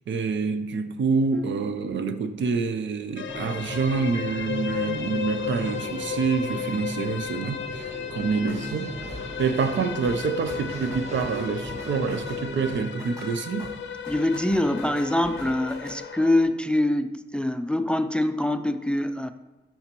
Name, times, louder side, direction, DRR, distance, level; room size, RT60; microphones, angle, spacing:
voice 1, 0.1-8.9 9.4-13.7, right 5 dB, 90° right, 0.6 m, -27 dB
sound 1, 3.2-16.4, left 8 dB, 85° left, 0.5 m, -35 dB
sound 2, 3.3-12.9, right 1 dB, 35° right, 0.9 m, -38 dB
sound 3, 8.5-16.0, equal, 20° right, 2.2 m, -46 dB
voice 2, 14.1-19.3, left 1 dB, 5° left, 0.3 m, -24 dB
11.0 x 4.4 x 3.0 m
wide cardioid pair, 105°, 19 cm